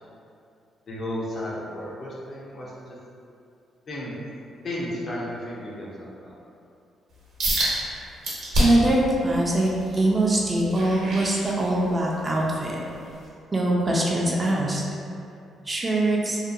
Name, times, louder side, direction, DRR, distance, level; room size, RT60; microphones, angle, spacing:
voice 1, 0.9-3.0 3.9-4.1 4.6-6.4, left 1 dB, 50° left, -6 dB, 0.6 m, -33 dB
sound 1, 7.4-7.7 8.2-8.9 9.4-12.0 12.5-12.7 13.3-13.4, equal, 75° right, 0.8 m, -27 dB
voice 2, 8.6-12.8 13.5-14.8 15.7-16.4, right 1 dB, 25° right, -3 dB, 0.4 m, -23 dB
2.7 x 2.2 x 2.4 m, 2.5 s
cardioid pair, 90°, 0 cm